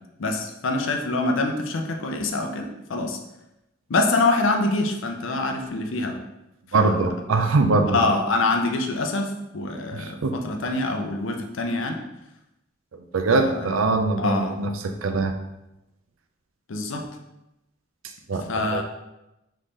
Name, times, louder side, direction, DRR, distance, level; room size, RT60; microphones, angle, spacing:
voice 1, 0.2-3.2 3.9-6.2 7.9-12.0 13.3-13.7 14.2-14.5 16.7-17.1 18.5-18.8, left 2 dB, 70° left, 3 dB, 0.6 m, -25 dB
voice 2, 6.7-8.1 9.9-10.3 12.9-15.3 18.3-18.8, right 3 dB, 80° right, 7 dB, 0.5 m, -23 dB
3.7 x 3.2 x 3.9 m, 0.92 s
head